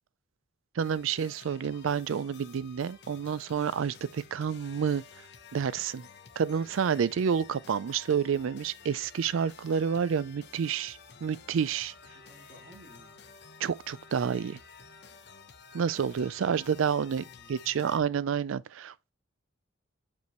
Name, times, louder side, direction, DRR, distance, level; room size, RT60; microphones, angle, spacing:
sound 1, 0.8-18.0, left 5 dB, 55° left, 0.8 m, -52 dB
voice 1, 0.8-5.0 5.5-6.1 6.4-11.9 13.6-14.6 15.7-19.1, right 7 dB, 75° right, 0.4 m, -29 dB
voice 2, 12.0-13.3 16.5-16.8 17.2-18.0, right 1 dB, 40° right, 2.7 m, -57 dB
6.8 x 5.2 x 3.1 m
head